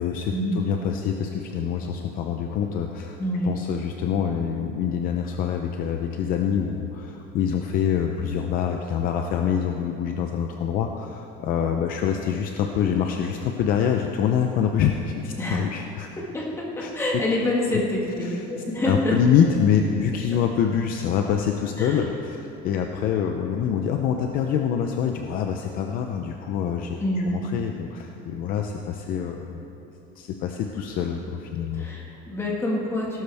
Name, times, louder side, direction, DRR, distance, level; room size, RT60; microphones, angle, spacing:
voice 1, 0.0-3.2 3.4-16.1 16.8-16.9 17.7-17.8 18.2-18.4 18.9-27.0 27.3-29.7 30.2-31.9, left 8 dB, 45° left, 3 dB, 0.6 m, -25 dB
voice 2, 3.2-3.5 15.4-15.7 16.2-19.2 21.8-22.0 27.0-27.3 31.7-33.2, left 1 dB, 10° left, -3 dB, 1.8 m, -27 dB
17.5 x 12.0 x 3.5 m, 2.9 s
cardioid pair, 180°, 20 cm